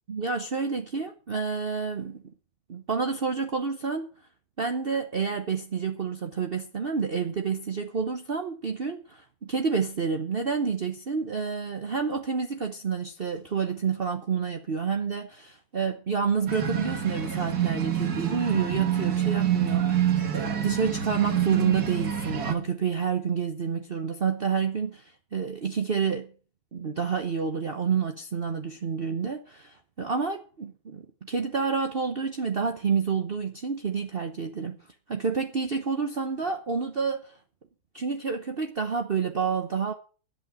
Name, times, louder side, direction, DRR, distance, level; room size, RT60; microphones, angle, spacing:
voice 1, 0.1-2.3 2.7-4.1 4.6-26.3 26.7-34.8 35.1-37.3 37.9-39.9, right 5 dB, 40° right, 1.1 m, -29 dB
sound 1, 16.5-22.5, right 9 dB, 70° right, 2.2 m, -27 dB
11.0 x 8.8 x 7.6 m
omnidirectional pair, 1.7 m